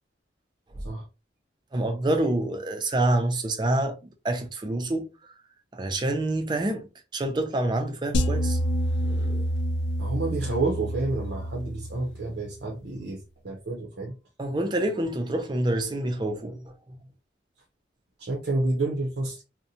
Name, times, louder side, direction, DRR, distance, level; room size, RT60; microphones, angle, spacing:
voice 1, 1.7-4.0 4.2-5.1 5.7-8.6 9.0-9.4 14.4-16.6, right 1 dB, 25° right, 0.4 m, -27 dB
sound 1, 8.1-12.5, equal, 80° left, 0.4 m, -28 dB
voice 2, 10.0-14.2 18.2-19.4, right 2 dB, 70° right, 0.6 m, -29 dB
2.6 x 2.1 x 2.7 m
head